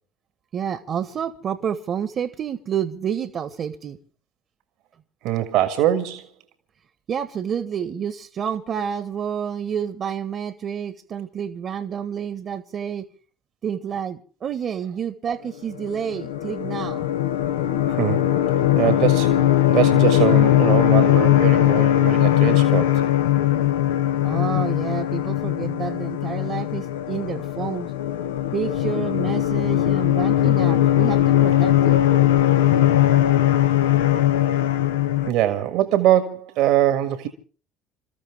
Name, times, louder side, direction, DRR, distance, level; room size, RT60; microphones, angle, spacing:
voice 1, 0.5-4.0 7.1-13.1 13.6-17.1 24.2-27.9 28.5-32.0, right 8 dB, 45° right, 1.3 m, -29 dB
voice 2, 5.2-6.3 17.9-18.3 18.8-19.4 19.7-23.0 35.2-37.3, right 12 dB, 70° right, 1.7 m, -22 dB
sound 1, 15.8-35.3, left 12 dB, 80° left, 0.8 m, -19 dB
27.5 x 14.0 x 3.5 m
hypercardioid pair, 60°, 0 cm